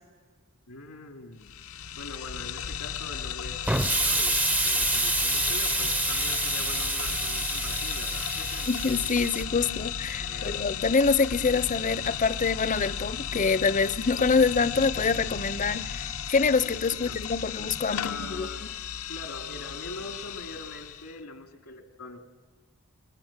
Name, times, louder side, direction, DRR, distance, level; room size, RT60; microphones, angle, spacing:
voice 1, 0.7-1.5 1.9-8.7 9.5-9.6 10.2-10.6 16.9-17.2 17.9-18.6 19.1-22.2, left 2 dB, 90° left, 2.7 m, -43 dB
sound 1, 1.4-21.1, left 8 dB, 70° left, 0.8 m, -35 dB
Explosion, 3.7-9.4, right 2 dB, 5° right, 0.7 m, -27 dB
voice 2, 8.7-18.5, left 4 dB, 35° left, 0.7 m, -25 dB
29.0 x 22.5 x 7.4 m
head